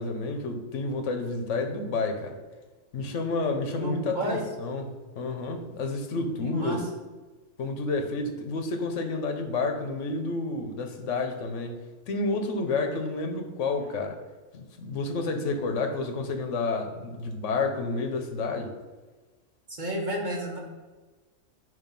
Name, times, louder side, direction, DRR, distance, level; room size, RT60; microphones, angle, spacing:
voice 1, 0.0-2.4 2.9-6.8 7.6-14.2 14.5-18.7, left 3 dB, 70° left, 5 dB, 1.2 m, -30 dB
voice 2, 3.7-4.4 6.4-6.8 19.8-20.6, right 1 dB, 35° right, -2 dB, 1.5 m, -31 dB
9.1 x 3.1 x 5.3 m, 1.2 s
omnidirectional pair, 1.3 m